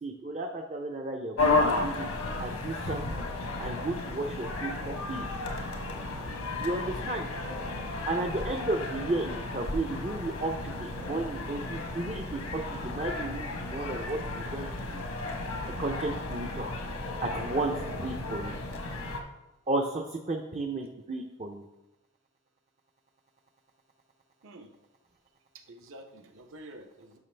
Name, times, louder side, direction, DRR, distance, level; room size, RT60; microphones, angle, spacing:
voice 1, 0.0-2.1 2.4-3.3 3.6-5.2 6.6-7.2 8.0-15.0 15.8-16.7 17.2-18.6 19.7-21.6, right 2 dB, 30° right, 2 dB, 0.5 m, -33 dB
sound 1, 1.4-19.2, left 2 dB, 80° left, 1.2 m, -33 dB
voice 2, 6.1-6.5 24.4-24.7 25.5-27.2, right 1 dB, 60° right, 5 dB, 0.9 m, -49 dB
11.0 x 6.1 x 3.3 m, 0.97 s
head